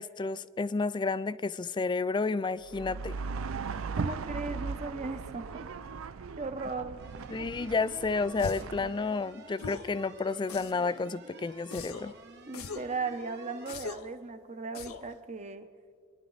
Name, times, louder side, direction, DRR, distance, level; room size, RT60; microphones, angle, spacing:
voice 1, 0.0-3.2 7.3-12.1, left 4 dB, 20° left, 0.3 m, -31 dB
sound 1, 2.6-8.9, right 5 dB, 70° right, 0.5 m, -38 dB
voice 2, 4.0-5.7 6.4-7.0 12.5-15.7, right 3 dB, 35° right, 0.8 m, -37 dB
sound 2, 7.0-13.7, right 3 dB, 55° right, 1.2 m, -51 dB
sound 3, 8.4-8.8 9.6-10.0 10.5-11.0 11.7-12.1 12.5-13.0 13.7-14.1 14.7-15.1, left 4 dB, 80° left, 0.7 m, -41 dB
26.0 x 11.0 x 4.0 m
head